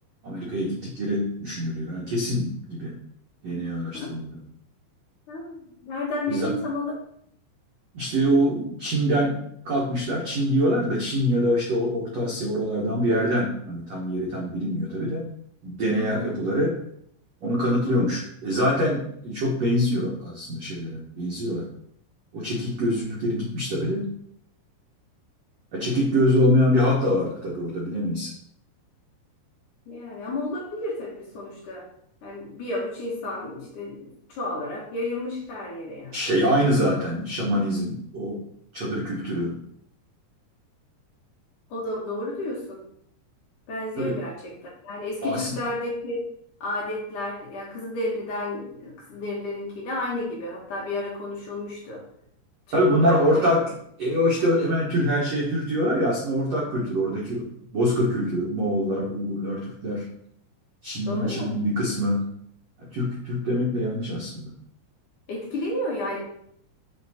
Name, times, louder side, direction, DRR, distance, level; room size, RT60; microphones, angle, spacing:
voice 1, 0.2-2.9 3.4-4.4 6.3-6.5 7.9-9.4 9.6-15.3 15.6-16.7 17.4-21.6 22.3-24.1 25.7-28.3 36.1-38.4 38.7-39.6 44.0-44.2 45.2-45.5 52.7-53.7 54.0-60.0 60.8-62.3 62.8-64.5, equal, 85° right, -3 dB, 1.4 m, -24 dB
voice 2, 5.3-6.9 16.0-16.3 17.7-18.1 29.9-31.9 32.2-36.2 41.7-42.9 43.7-46.3 46.6-52.1 52.7-53.5 54.4-54.7 57.3-57.4 61.1-61.5 65.3-66.2, left 2 dB, 60° left, -3 dB, 2.3 m, -32 dB
5.9 x 5.8 x 4.1 m, 0.69 s
omnidirectional pair, 5.0 m